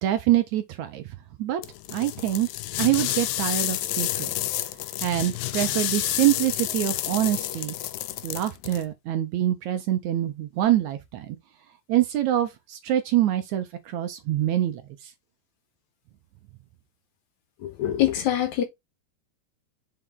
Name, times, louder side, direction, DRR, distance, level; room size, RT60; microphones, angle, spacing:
voice 1, 0.0-1.0 1.4-1.6 1.9-2.5 2.8-4.3 5.0-7.8 8.2-11.4 11.9-15.1, right 13 dB, 75° right, 1.9 m, -25 dB
sound 1, 1.6-8.8, left 15 dB, 85° left, 2.3 m, -30 dB
voice 2, 17.6-18.6, left 12 dB, 70° left, 2.1 m, -24 dB
5.8 x 4.9 x 3.7 m
omnidirectional pair, 3.9 m